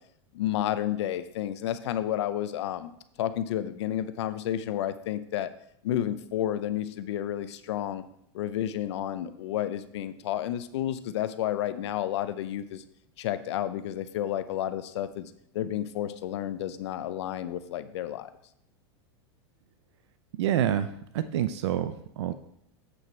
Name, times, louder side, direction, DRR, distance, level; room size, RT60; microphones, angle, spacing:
voice 1, 0.3-2.9 3.2-5.5 5.8-8.0 8.3-12.8 13.2-18.3, left 11 dB, 75° left, 12 dB, 0.6 m, -31 dB
voice 2, 20.4-20.9 21.1-22.3, right 10 dB, 75° right, 11 dB, 0.6 m, -27 dB
8.0 x 6.2 x 4.4 m, 0.72 s
supercardioid pair, 125°, 15 cm